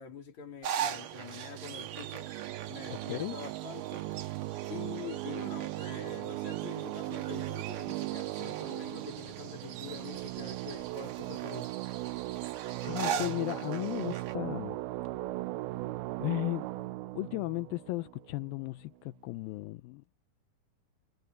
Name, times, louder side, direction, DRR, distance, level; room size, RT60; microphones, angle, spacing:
voice 1, 0.0-2.3 2.7-4.1 4.7-11.8, left 6 dB, 50° left, 4.2 m, -45 dB
sound 1, 0.6-14.4, right 8 dB, 60° right, 1.9 m, -41 dB
sound 2, 0.7-18.9, right 18 dB, 85° right, 2.5 m, -38 dB
sound 3, 5.9-10.9, right 2 dB, 35° right, 8.6 m, -63 dB
voice 2, 12.8-14.8 16.2-16.8 17.1-20.0, left 21 dB, 80° left, 2.2 m, -35 dB
omnidirectional pair, 4.5 m